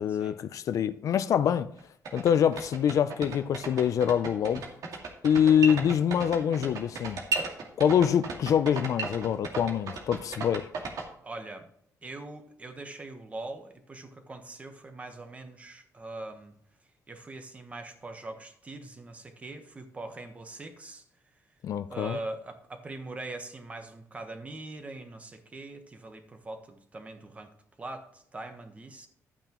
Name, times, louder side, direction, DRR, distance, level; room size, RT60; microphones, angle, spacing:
voice 1, 0.0-1.7 2.1-4.6 5.2-7.2 7.8-10.7 21.6-22.2, left 8 dB, 65° left, 0.5 m, -25 dB
sound 1, 1.8-1.9 2.1-11.0, right 4 dB, 75° right, 2.1 m, -34 dB
voice 2, 5.6-5.9 11.2-11.7 12.0-16.5 17.1-21.0 21.9-27.5 27.8-29.1, right 2 dB, 20° right, 1.2 m, -42 dB
12.0 x 8.9 x 3.0 m
wide cardioid pair, 155°, 6 cm